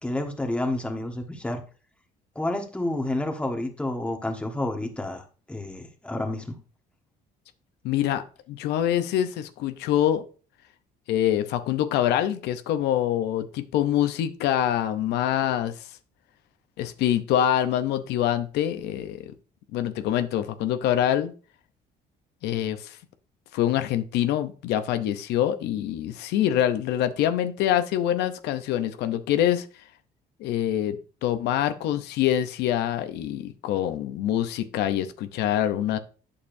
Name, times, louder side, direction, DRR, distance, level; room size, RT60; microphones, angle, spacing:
voice 1, 0.0-1.6 2.3-6.5, left 1 dB, 5° left, 3 dB, 1.4 m, -30 dB
voice 2, 7.8-8.2 8.5-10.2 11.1-15.7 16.8-19.3 19.7-21.3 22.4-23.0 23.5-29.7 30.4-36.0, left 11 dB, 85° left, 10 dB, 0.6 m, -25 dB
8.5 x 6.7 x 2.6 m, 0.36 s
cardioid pair, 110°, 17 cm